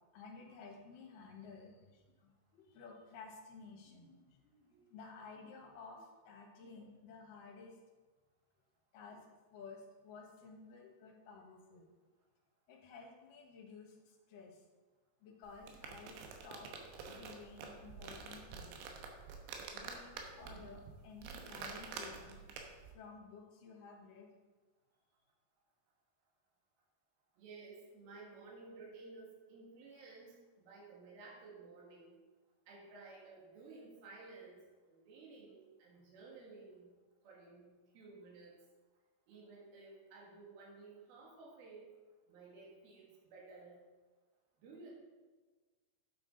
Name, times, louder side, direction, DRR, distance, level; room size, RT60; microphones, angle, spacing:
voice 1, 0.1-7.8 8.9-9.3 9.5-11.9 12.7-14.6 15.2-18.8 19.7-22.4 22.9-24.3, left 4 dB, 60° left, 0 dB, 2.6 m, -54 dB
sound 1, 15.4-22.9, right 5 dB, 85° right, 3.2 m, -48 dB
voice 2, 27.4-32.2 32.7-36.9 37.2-38.5 39.3-41.8 42.3-43.8 44.6-44.9, right 3 dB, 65° right, -3 dB, 3.6 m, -55 dB
8.6 x 8.5 x 3.9 m, 1.3 s
omnidirectional pair, 5.1 m